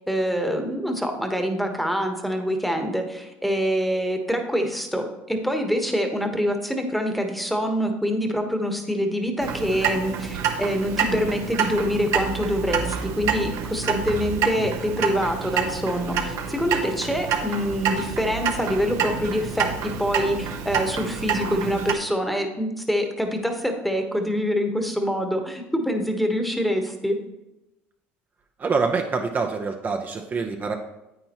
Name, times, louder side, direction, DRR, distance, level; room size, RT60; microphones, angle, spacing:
voice 1, 0.1-27.2, equal, ahead, 5 dB, 1.3 m, -25 dB
Clock, 9.4-21.9, right 7 dB, 65° right, 1.0 m, -27 dB
voice 2, 28.6-30.7, right 4 dB, 35° right, 3 dB, 0.8 m, -25 dB
9.6 x 8.6 x 3.0 m, 0.95 s
supercardioid pair, 85°, 6 cm